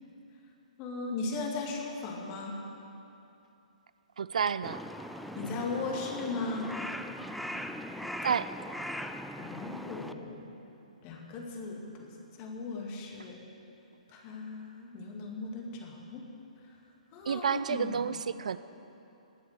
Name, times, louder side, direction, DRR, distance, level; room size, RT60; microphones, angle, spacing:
voice 1, 0.8-2.6 5.4-6.8 9.4-10.5 11.0-12.1 12.4-13.4 14.1-16.2 17.1-18.0, left 3 dB, 30° left, 0 dB, 2.4 m, -37 dB
voice 2, 4.2-4.8 8.2-8.5 17.3-18.6, right 7 dB, 65° right, 15 dB, 0.4 m, -30 dB
Crow, 4.6-10.1, equal, ahead, 0.4 m, -40 dB
19.5 x 7.1 x 6.8 m, 2.9 s
figure-of-eight pair, 130°, 4 cm